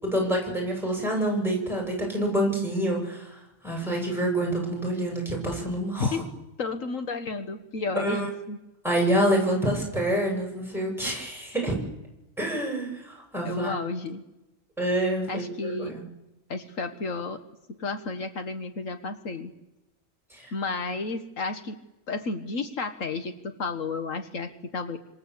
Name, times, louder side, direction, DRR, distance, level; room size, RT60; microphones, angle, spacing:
voice 1, 0.0-6.2 8.0-8.3 8.8-11.8 12.4-13.7 14.8-16.0 20.3-20.5, right 1 dB, ahead, 0 dB, 7.5 m, -27 dB
voice 2, 6.6-8.6 13.4-14.2 15.3-16.0 16.5-17.4 17.8-19.5 20.5-21.8 22.1-25.0, left 4 dB, 75° left, 8 dB, 1.8 m, -32 dB
27.5 x 26.0 x 8.2 m, 0.97 s
omnidirectional pair, 1.4 m